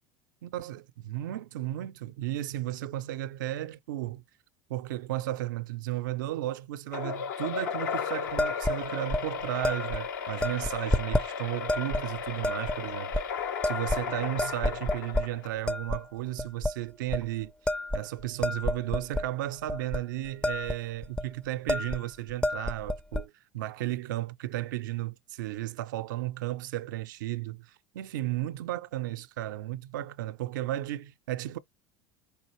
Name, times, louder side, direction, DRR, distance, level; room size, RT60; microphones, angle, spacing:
voice 1, 0.4-4.2 4.7-13.1 13.6-17.5 17.9-31.6, right 15 dB, 80° right, 0.4 m, -34 dB
sound 1, 6.9-15.7, left 6 dB, 85° left, 0.7 m, -35 dB
sound 2, 8.4-8.8 9.1-9.2 9.6-10.0 10.4-11.3 11.7-12.0 12.4-12.8 13.1-13.2 13.6-14.1 14.4-15.3 15.7-16.0 16.4-16.7 17.1-17.3 17.7-19.3 19.7-20.0 20.3-20.8 21.0-21.2 21.7-22.0 22.3-23.2, left 1 dB, 10° left, 0.4 m, -29 dB
4.8 x 2.5 x 3.0 m
hypercardioid pair, 90°, 10 cm